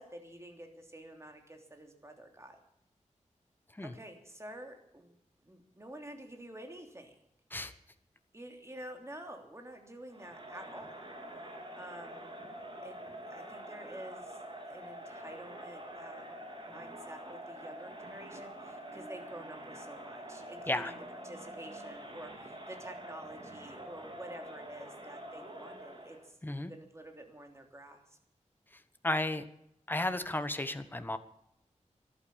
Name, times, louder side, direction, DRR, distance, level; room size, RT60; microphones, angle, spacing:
voice 1, 0.0-2.6 3.8-5.2 5.4-7.1 8.3-10.9 11.4-12.3 12.8-14.4 14.6-26.4 26.7-28.2, right 1 dB, 20° right, 3 dB, 3.2 m, -49 dB
Crowd, 10.1-26.3, right 1 dB, 40° right, 3.9 m, -46 dB
voice 2, 29.0-29.4 29.9-31.2, left 1 dB, 15° left, 10 dB, 1.1 m, -33 dB
14.0 x 12.0 x 7.2 m, 0.75 s
wide cardioid pair, 90°, 13 cm